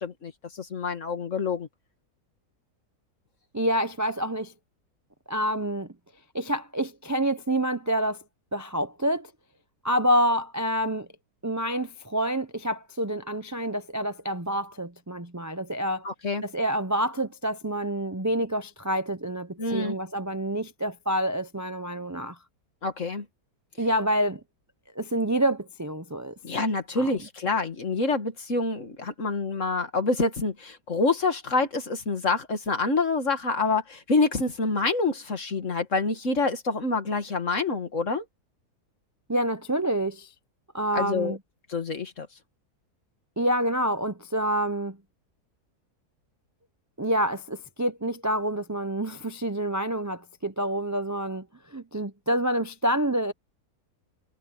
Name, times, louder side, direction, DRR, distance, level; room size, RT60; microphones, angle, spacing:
voice 1, 0.0-1.7 16.0-16.4 19.6-19.9 22.8-23.2 26.4-38.2 40.9-41.4 41.7-42.3, left 3 dB, 50° left, 2.4 m, -27 dB
voice 2, 3.5-4.5 5.3-5.9 6.3-8.2 8.5-9.3 9.8-11.1 11.4-16.1 16.4-22.4 23.8-24.4 25.0-26.3 27.0-27.1 39.3-40.3 40.7-41.4 43.4-45.0 47.0-53.3, right 1 dB, 25° right, 0.3 m, -27 dB
omnidirectional pair, 1.7 m